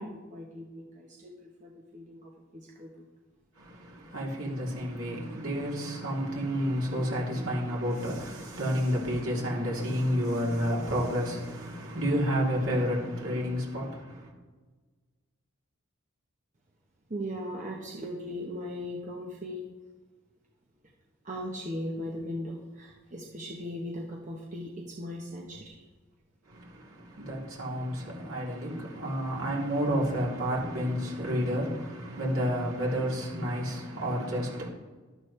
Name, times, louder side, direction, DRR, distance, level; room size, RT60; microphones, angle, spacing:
voice 1, 0.0-1.3 1.6-3.0 17.1-19.7 21.2-25.7, equal, 35° right, 1.0 m, -38 dB
voice 2, 3.6-14.3 26.4-34.7, equal, 70° right, 3.2 m, -30 dB
12.0 x 11.0 x 3.3 m
head